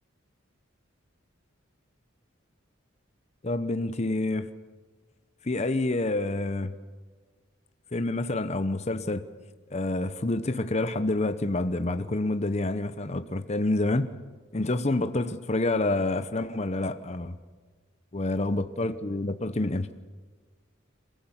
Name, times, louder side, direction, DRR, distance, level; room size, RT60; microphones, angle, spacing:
voice 1, 3.4-4.5 5.4-6.7 7.9-9.2 9.7-14.1 14.5-17.4 18.1-19.9, left 2 dB, 30° left, 0.8 m, -28 dB
27.0 x 16.0 x 7.3 m
head